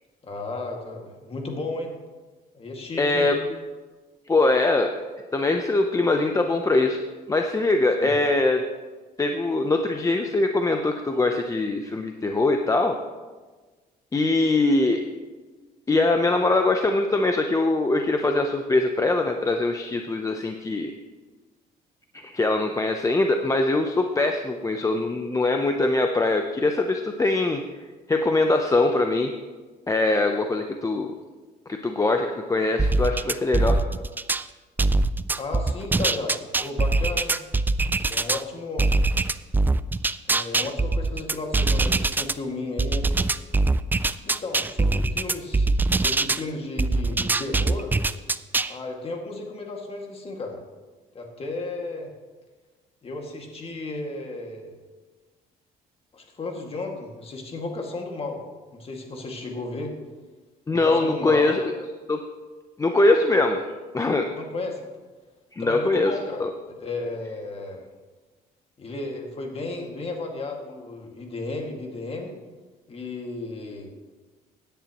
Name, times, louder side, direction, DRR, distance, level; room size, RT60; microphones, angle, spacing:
voice 1, 0.2-1.9 2.5-3.3 8.0-8.2 35.4-37.4 38.1-38.9 40.3-43.1 44.3-47.9 48.7-50.6 51.1-52.1 53.0-54.7 56.1-58.4 58.7-59.9 60.7-61.9 64.4-64.9 65.6-67.8 68.8-72.3 72.9-73.9, left 2 dB, 35° left, 2 dB, 2.1 m, -34 dB
voice 2, 3.0-3.4 4.3-4.9 5.3-7.0 7.3-8.6 9.2-13.0 14.1-15.0 15.9-20.9 22.2-27.6 28.1-29.3 29.9-31.1 31.7-33.8 60.7-61.6 62.1-62.2 62.8-63.6 63.9-64.3 65.5-66.1 66.4-66.5, left 2 dB, 20° left, 5 dB, 0.7 m, -22 dB
sound 1, 32.8-34.4 34.8-38.4 38.8-42.3 42.8-46.4 46.8-48.7, right 3 dB, 10° right, 0.3 m, -23 dB
16.0 x 10.0 x 3.0 m, 1.3 s
cardioid pair, 110°, 17 cm